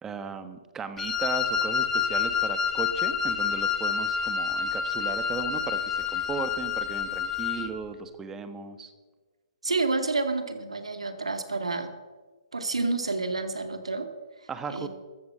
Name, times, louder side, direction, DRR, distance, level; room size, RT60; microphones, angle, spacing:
voice 1, 0.0-8.9 14.5-14.9, right 5 dB, 15° right, 9 dB, 1.3 m, -36 dB
Wind instrument woodwind instrument, 1.0-7.7, left 6 dB, 10° left, 1.6 m, -28 dB
voice 2, 9.6-11.9 12.5-14.1 14.7-14.9, right 3 dB, 90° right, 6 dB, 2.2 m, -29 dB
14.5 x 13.5 x 5.6 m, 1.3 s
hypercardioid pair, 140°, 3 cm